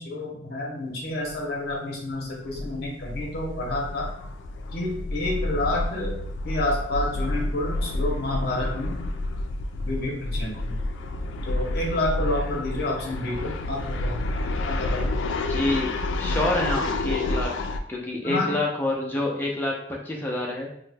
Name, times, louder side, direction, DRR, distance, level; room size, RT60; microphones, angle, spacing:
voice 1, 0.0-4.0 4.7-6.1 6.4-9.0 9.8-10.8 11.5-15.1 18.2-18.6, left 1 dB, 55° left, -2 dB, 0.7 m, -29 dB
sound 1, 1.3-1.4 1.7-1.8 2.1-17.8, left 2 dB, 85° left, 0.3 m, -29 dB
voice 2, 15.5-17.5 17.9-19.7 20.0-20.7, left 1 dB, 10° left, -2 dB, 0.4 m, -27 dB
2.9 x 2.1 x 3.3 m, 0.71 s
head